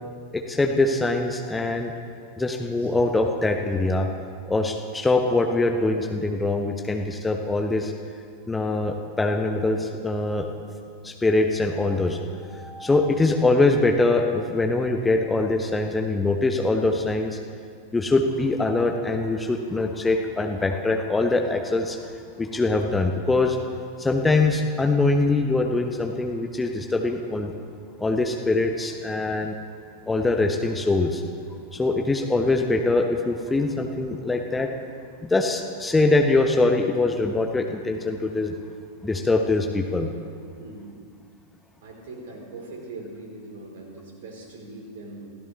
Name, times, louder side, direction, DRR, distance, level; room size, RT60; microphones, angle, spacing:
voice 1, 0.3-1.9 2.4-4.1 4.5-7.9 8.5-10.5 11.0-12.2 12.5-17.4 17.9-22.0 22.4-23.6 24.0-27.5 28.0-29.6 30.1-31.2 31.7-34.7 35.2-38.6 39.0-40.1, left 2 dB, 10° left, 4 dB, 1.1 m, -23 dB
voice 2, 31.7-32.0 40.6-41.0 41.8-45.3, right 2 dB, 55° right, 0 dB, 3.7 m, -41 dB
27.5 x 16.0 x 3.3 m, 2.2 s
figure-of-eight pair, 90°, 0 cm